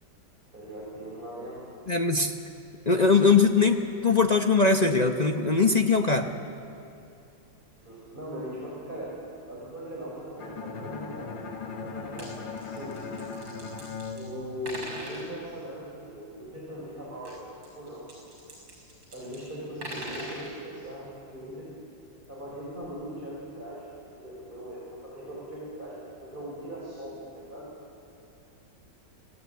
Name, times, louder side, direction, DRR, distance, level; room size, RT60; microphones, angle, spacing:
voice 1, 0.5-1.6 7.7-9.1 9.5-11.3 11.6-13.0 14.1-17.5 17.8-18.0 19.1-21.7 22.3-23.8 24.2-27.7, equal, 25° right, -6 dB, 5.2 m, -40 dB
voice 2, 1.9-2.4 2.9-6.3, left 4 dB, 45° left, 4 dB, 0.5 m, -21 dB
Bowed string instrument, 10.4-15.3, left 5 dB, 85° left, 2.2 m, -39 dB
sound 1, 11.9-12.3 12.6-14.3 14.7-15.3 17.2-19.4 19.6-20.5 22.2-22.3 22.8-22.9, right 1 dB, 85° right, 5.8 m, -41 dB
26.0 x 17.0 x 8.2 m, 2.6 s
omnidirectional pair, 2.0 m